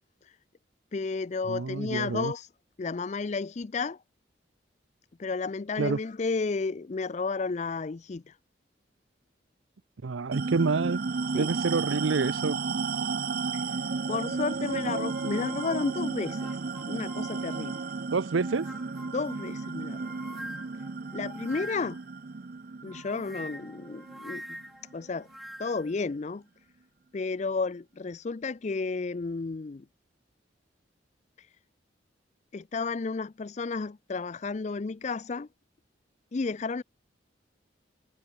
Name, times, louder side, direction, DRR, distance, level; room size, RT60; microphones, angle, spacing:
voice 1, 0.9-2.5 2.8-4.0 5.2-8.2 11.3-11.5 14.1-16.6 16.9-17.8 19.1-20.1 21.1-22.0 22.8-24.6 24.9-25.3 25.6-26.4 27.1-29.9 32.5-35.5 36.3-36.8, left 4 dB, 35° left, 0.4 m, -32 dB
voice 2, 1.5-2.3 5.8-6.0 10.0-11.0 11.4-12.6 18.1-18.7, right 4 dB, 90° right, 0.6 m, -28 dB
sound 1, 10.3-25.1, right 4 dB, 50° right, 0.6 m, -33 dB
sound 2, 14.6-17.9 18.4-22.1 22.9-25.9, equal, ahead, 2.2 m, -46 dB
head